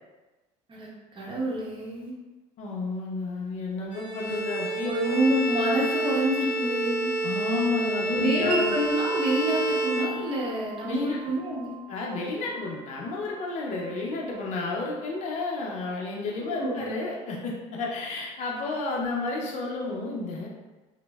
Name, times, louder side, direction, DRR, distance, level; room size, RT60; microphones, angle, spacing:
voice 1, 0.7-2.1 4.8-7.1 8.2-11.8 16.4-16.9, equal, 35° right, -4 dB, 0.8 m, -28 dB
voice 2, 2.6-5.2 7.2-8.8 10.9-11.2 11.9-20.5, left 3 dB, 55° left, -3 dB, 0.5 m, -31 dB
Bowed string instrument, 3.9-10.7, right 2 dB, 25° left, 1.5 m, -29 dB
Wind chime, 8.5-16.1, right 5 dB, 75° right, 0.5 m, -41 dB
3.0 x 2.0 x 2.2 m, 1.2 s
supercardioid pair, 95°, 15 cm